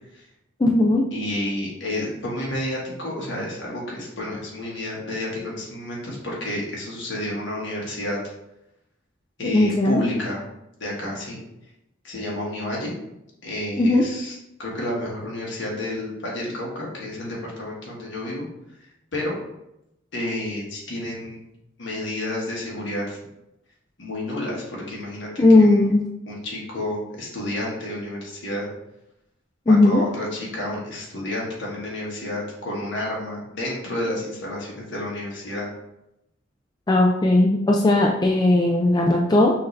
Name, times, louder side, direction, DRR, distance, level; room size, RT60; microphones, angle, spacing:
voice 1, 0.6-1.0 9.4-10.0 13.8-14.0 25.4-26.1 29.7-30.0 36.9-39.5, left 2 dB, 20° left, 0 dB, 0.3 m, -17 dB
voice 2, 1.1-8.2 9.4-10.4 10.8-11.4 12.0-12.9 13.4-18.4 19.1-19.3 20.1-21.4 21.8-23.2 24.0-25.3 25.6-25.9 26.2-28.7 29.6-35.7, left 1 dB, 65° left, -4 dB, 1.5 m, -30 dB
5.7 x 2.7 x 3.2 m, 0.86 s
head